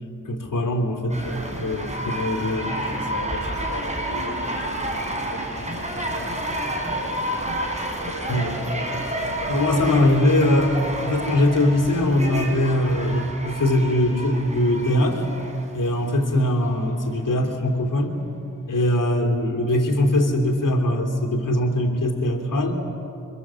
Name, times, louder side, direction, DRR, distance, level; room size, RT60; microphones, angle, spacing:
voice 1, 0.2-1.3 1.6-3.0 8.3-8.5 9.5-15.3 15.7-18.2 18.7-22.8, left 1 dB, 85° left, 1 dB, 3.0 m, -21 dB
sound 1, 1.1-16.2 16.8-16.9, right 1 dB, 20° right, 4.4 m, -30 dB
voice 2, 2.8-7.5 8.0-9.6, left 2 dB, 65° left, -3 dB, 3.9 m, -39 dB
26.0 x 25.0 x 7.6 m, 2.9 s
wide cardioid pair, 65°, 31 cm